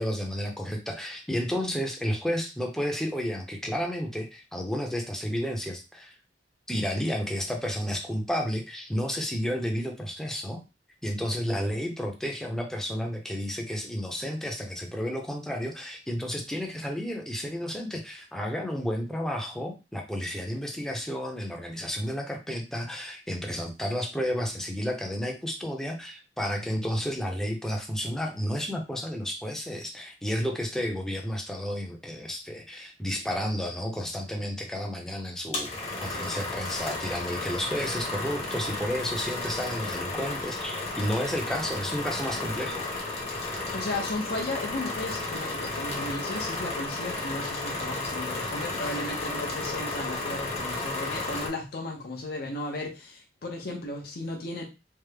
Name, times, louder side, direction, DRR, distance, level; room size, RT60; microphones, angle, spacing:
voice 1, 0.0-6.1 6.7-10.6 11.0-42.9, equal, 5° left, 1 dB, 0.6 m, -31 dB
sound 1, 35.5-51.5, left 2 dB, 35° left, 0.9 m, -33 dB
voice 2, 43.7-54.6, left 2 dB, 60° left, 0 dB, 0.6 m, -35 dB
3.4 x 2.0 x 3.3 m, 0.28 s
head